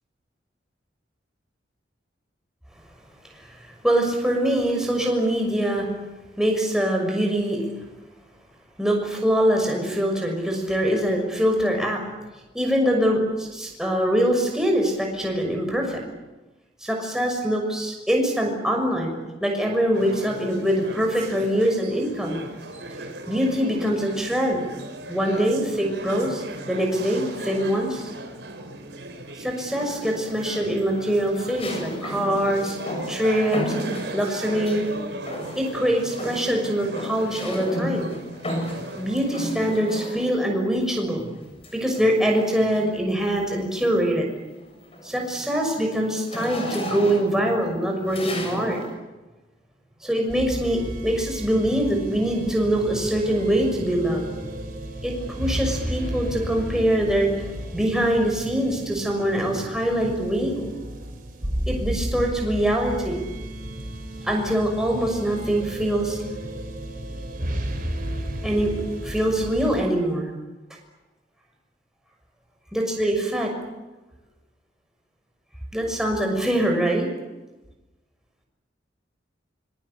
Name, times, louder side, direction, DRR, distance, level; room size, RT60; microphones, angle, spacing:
voice 1, 3.8-5.9 6.4-7.7 8.8-12.0 12.5-16.0 16.8-22.4 23.3-24.6 25.1-28.1 29.4-32.8 33.1-33.7 34.1-34.8 35.5-38.1 39.0-41.2 41.7-44.3 45.0-48.8 50.0-54.2 55.0-57.3 57.7-60.7 61.7-63.2 64.2-66.2 68.4-68.7 69.0-70.3 72.7-73.5 75.7-77.1, equal, 5° right, 1 dB, 6.2 m, -23 dB
sound 1, 19.9-39.8, right 2 dB, 65° right, 4.5 m, -38 dB
sound 2, 29.7-30.2 31.6-34.9 35.3-35.8 36.1-40.5 41.6-43.0 43.5-43.8 44.2-48.9, left 1 dB, 30° left, 7.3 m, -34 dB
sound 3, 50.3-69.8, right 1 dB, 50° right, 4.6 m, -33 dB
26.0 x 23.0 x 8.5 m, 1.1 s
head